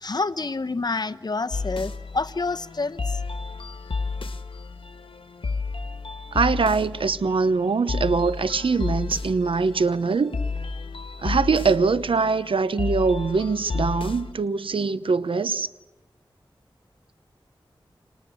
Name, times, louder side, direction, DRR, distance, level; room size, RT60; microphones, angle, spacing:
voice 1, 0.0-3.0, left 3 dB, 50° left, 0.9 m, -28 dB
sound 1, 1.5-14.3, left 4 dB, 75° left, 1.4 m, -32 dB
voice 2, 6.3-10.4 11.2-15.7, right 4 dB, 80° right, 0.9 m, -23 dB
29.5 x 26.0 x 7.0 m
wide cardioid pair, 55°, 9 cm